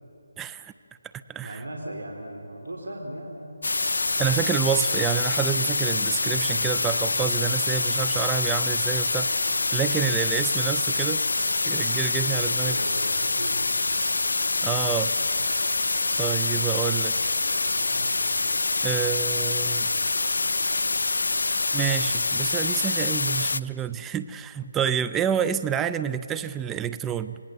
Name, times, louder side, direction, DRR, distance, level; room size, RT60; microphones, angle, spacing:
voice 1, 0.4-0.7 1.3-1.6 4.2-9.3 9.7-11.2 11.7-12.8 14.6-15.1 16.2-17.1 18.8-19.9 21.7-27.4, right 9 dB, 10° right, 11 dB, 0.4 m, -28 dB
voice 2, 1.4-3.5 12.1-13.7 17.9-18.2, right 1 dB, 80° right, 1 dB, 3.1 m, -38 dB
sound 1, 3.6-23.6, left 3 dB, 75° left, 0.6 m, -25 dB
27.0 x 19.0 x 6.8 m, 2.8 s
figure-of-eight pair, 155°, 0 cm